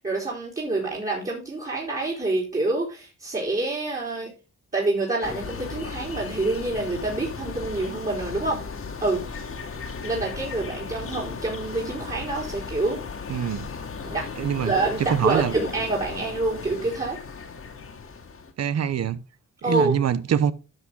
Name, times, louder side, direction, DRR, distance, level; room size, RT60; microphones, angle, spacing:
voice 1, 0.0-4.3 4.7-8.6 9.0-9.2 10.0-13.0 14.0-14.3 14.6-17.2 19.6-19.9, right 2 dB, 25° right, 3.8 m, -27 dB
sound 1, 5.2-18.5, left 5 dB, 50° left, 1.9 m, -36 dB
voice 2, 13.3-13.7 14.4-14.7 15.1-15.5 18.6-19.2 19.6-20.5, right 8 dB, 60° right, 0.9 m, -24 dB
12.0 x 6.4 x 3.8 m
cardioid pair, 90°, 29 cm